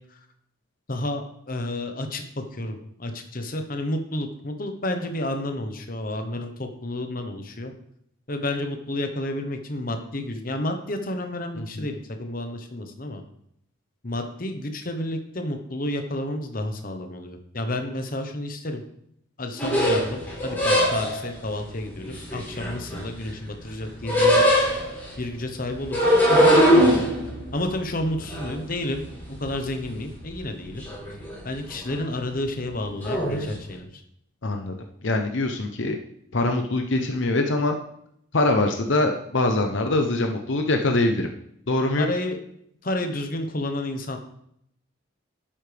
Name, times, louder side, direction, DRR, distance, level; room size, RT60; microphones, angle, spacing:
voice 1, 0.9-7.7 8.3-13.2 14.0-18.8 19.4-24.4 25.2-27.0 27.5-30.8 31.4-33.9 42.0-42.4 42.8-44.2, left 1 dB, 45° left, 5 dB, 1.1 m, -30 dB
voice 2, 11.6-11.9 34.4-34.7 35.0-36.0 36.3-37.7 38.3-41.3 41.7-42.1, left 2 dB, 65° left, 4 dB, 0.8 m, -23 dB
sound 1, 19.6-21.3 22.0-23.3 23.6-25.1 25.8-29.5 29.8-30.5 30.8-31.4 31.7-31.9 33.0-33.4, equal, 10° left, 4.0 m, -21 dB
11.0 x 8.8 x 3.4 m, 0.73 s
head